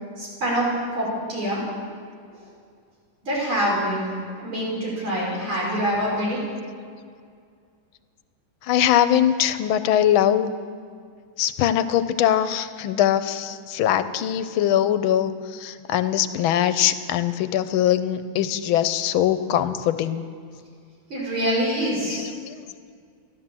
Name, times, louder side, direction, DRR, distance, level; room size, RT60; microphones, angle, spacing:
voice 1, 0.2-1.7 3.2-6.4 21.1-22.3, equal, 80° right, -5 dB, 5.9 m, -25 dB
voice 2, 8.6-10.5 11.4-20.2 22.1-22.5, left 11 dB, 85° left, 12 dB, 1.5 m, -22 dB
13.5 x 11.5 x 7.5 m, 2.1 s
omnidirectional pair, 2.2 m